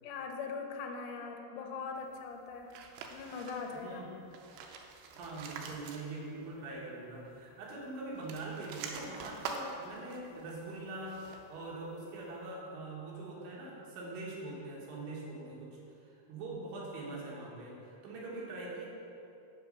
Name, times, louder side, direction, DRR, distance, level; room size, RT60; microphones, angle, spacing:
voice 1, 0.0-2.7 3.1-4.1, left 5 dB, 85° left, 3 dB, 2.5 m, -41 dB
sound 1, 2.7-3.9 4.2-6.5 6.8-6.9 8.1-11.6, right 5 dB, 85° right, 2.6 m, -46 dB
voice 2, 5.1-18.9, right 2 dB, 70° right, -4 dB, 2.8 m, -43 dB
5.7 x 5.6 x 5.3 m, 2.7 s
omnidirectional pair, 4.5 m